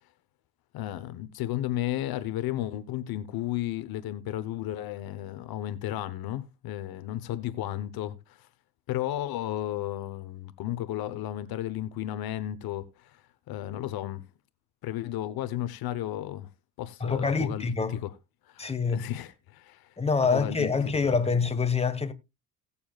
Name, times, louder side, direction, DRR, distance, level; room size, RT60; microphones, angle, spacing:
voice 1, 0.7-8.5 8.9-14.3 14.8-16.5 16.8-17.7 18.0-18.1 18.5-19.9 20.3-20.7 21.1-21.2, left 13 dB, 65° left, 0.9 m, -33 dB
voice 2, 17.0-18.0 18.6-19.1 20.0-22.1, left 4 dB, 15° left, 1.3 m, -26 dB
18.0 x 7.0 x 2.3 m
cardioid pair, 95°, 39 cm